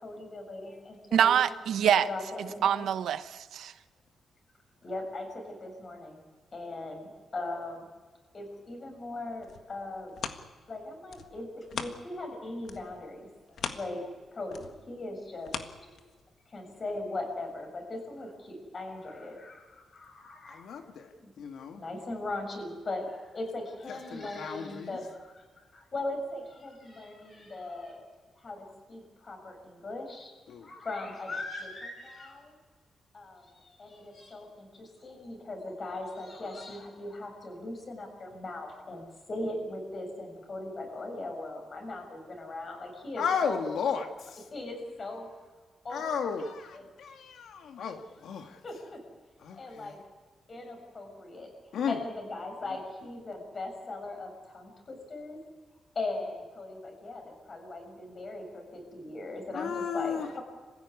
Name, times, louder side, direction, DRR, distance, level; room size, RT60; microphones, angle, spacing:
voice 1, 0.0-1.4 1.8-2.8 4.8-6.2 6.5-7.8 8.3-10.1 10.7-13.4 13.7-14.0 14.3-16.0 16.5-20.7 21.2-21.3 21.7-25.4 25.7-28.0 28.3-30.3 30.6-32.5 33.1-43.8 44.5-45.3 45.8-46.1 46.4-46.5 48.6-49.0 49.5-50.0 50.5-51.5 51.9-55.4 55.9-60.4, left 2 dB, 40° left, 3 dB, 6.8 m, -39 dB
voice 2, 1.1-2.1 2.6-3.7, right 9 dB, 85° right, 12 dB, 1.0 m, -25 dB
sound 1, 9.4-12.3 12.6-16.4 16.9-17.0, left 6 dB, 70° left, 1.7 m, -41 dB
voice 3, 20.5-21.8 23.9-25.0 30.5-30.7 43.2-44.5 45.9-48.6 49.4-50.0 51.7-52.0 59.5-60.4, left 6 dB, 85° left, 5 dB, 1.9 m, -34 dB
26.5 x 15.5 x 9.8 m, 1.4 s
cardioid pair, 120°, 0 cm